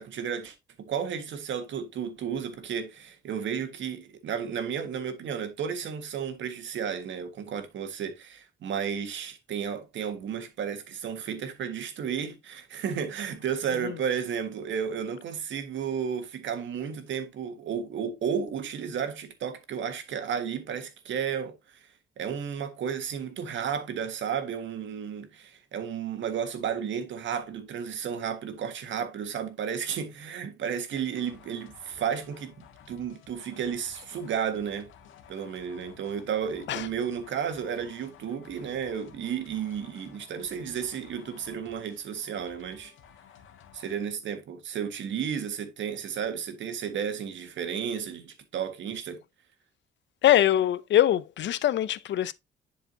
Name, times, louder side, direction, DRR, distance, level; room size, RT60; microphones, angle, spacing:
voice 1, 0.0-21.9 22.2-34.9 35.3-42.9 43.7-49.2, right 7 dB, 70° right, 1.7 m, -33 dB
sound 1, 31.1-44.0, left 8 dB, 85° left, 1.6 m, -54 dB
voice 2, 50.2-52.3, left 12 dB, 65° left, 0.6 m, -23 dB
10.5 x 4.9 x 2.8 m
cardioid pair, 90°, 20 cm